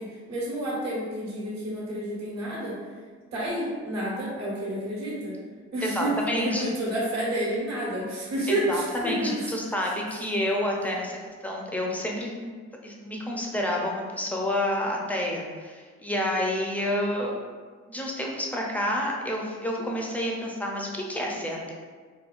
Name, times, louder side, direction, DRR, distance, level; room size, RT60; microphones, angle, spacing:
voice 1, 0.0-2.8 3.3-5.3 5.7-9.5 9.8-9.9, right 1 dB, 60° right, -6 dB, 1.3 m, -30 dB
voice 2, 5.8-6.6 8.5-11.2 11.4-12.5 12.8-17.3 17.9-21.7, left 1 dB, 5° left, -2 dB, 0.5 m, -29 dB
3.7 x 2.2 x 2.4 m, 1.5 s
cardioid pair, 90°, 30 cm